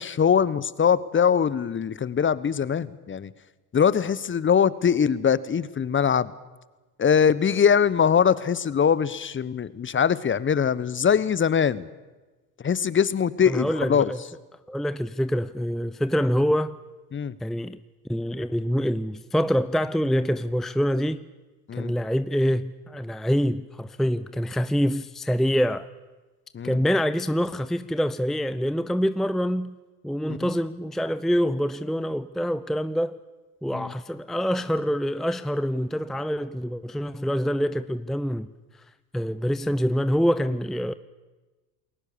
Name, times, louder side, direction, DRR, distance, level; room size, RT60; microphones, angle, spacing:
voice 1, 0.0-3.3 3.7-6.3 7.0-11.9 12.6-14.1 17.1-17.3 21.7-21.9 26.5-26.8 30.3-30.5 33.7-33.9, left 7 dB, 25° left, 1.2 m, -22 dB
voice 2, 13.5-14.2 14.7-16.8 17.4-17.8 18.1-21.2 21.7-25.9 26.6-29.8 30.0-33.2 33.6-38.5 39.1-40.9, equal, ahead, 0.7 m, -25 dB
29.0 x 21.5 x 7.0 m
hypercardioid pair, 70°, 46 cm